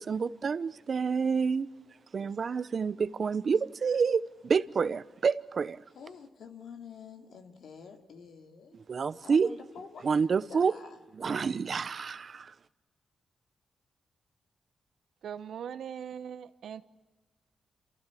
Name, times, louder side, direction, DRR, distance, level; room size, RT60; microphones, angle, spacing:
voice 1, 0.0-1.7 2.1-5.8 8.7-9.5 10.0-10.7 11.1-12.5, right 5 dB, 55° right, 0.8 m, -28 dB
voice 2, 5.9-8.8 9.2-10.9, left 6 dB, 80° left, 2.7 m, -48 dB
voice 3, 15.2-16.8, right 8 dB, 80° right, 1.0 m, -40 dB
27.0 x 15.5 x 8.5 m
cardioid pair, 75°, 0 cm